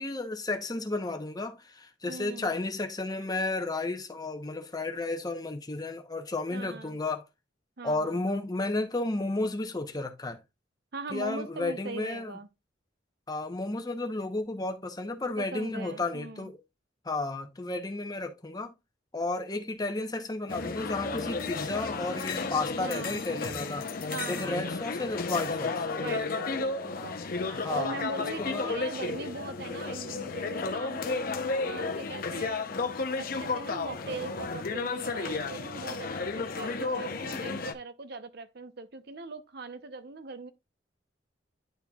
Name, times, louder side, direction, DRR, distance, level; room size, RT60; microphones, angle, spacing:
voice 1, 0.0-7.2 7.8-10.4 11.1-12.4 13.3-16.6 17.0-18.7 19.1-23.9 24.3-25.9 27.5-28.0 28.4-28.8, left 2 dB, 20° left, 0.9 m, -33 dB
voice 2, 2.1-2.5 6.5-7.0 7.8-8.4 10.9-12.5 15.4-16.5 22.7-23.3 24.1-24.8 26.0-32.7 33.2-40.5, right 3 dB, 60° right, 0.8 m, -40 dB
sound 1, 20.5-37.7, left 4 dB, 50° left, 0.7 m, -33 dB
10.5 x 4.3 x 2.3 m
head